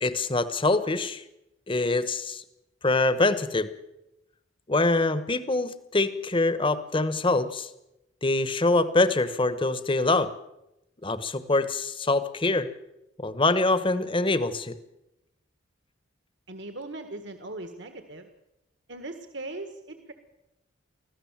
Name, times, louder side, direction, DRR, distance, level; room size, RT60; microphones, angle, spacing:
voice 1, 0.0-1.2 1.7-2.4 2.8-3.7 4.7-7.7 8.2-10.3 11.0-12.7 13.2-14.7, left 2 dB, 25° left, 13 dB, 1.2 m, -24 dB
voice 2, 16.5-18.3 18.9-20.1, right 2 dB, 60° right, 7 dB, 1.7 m, -39 dB
24.5 x 15.5 x 7.4 m, 0.90 s
head